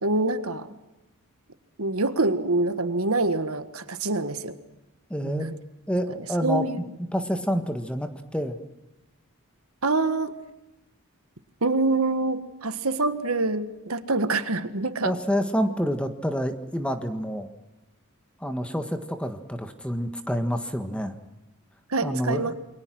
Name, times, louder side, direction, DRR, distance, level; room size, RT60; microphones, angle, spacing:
voice 1, 0.0-0.7 1.8-4.6 5.2-5.5 6.4-6.8 9.8-10.4 11.6-15.1 21.9-22.5, right 2 dB, 75° right, 10 dB, 1.7 m, -25 dB
voice 2, 5.1-5.5 5.9-6.7 7.1-8.6 15.0-17.5 18.4-21.2 22.0-22.5, equal, 5° left, 7 dB, 1.6 m, -28 dB
29.0 x 23.0 x 6.2 m, 0.99 s
head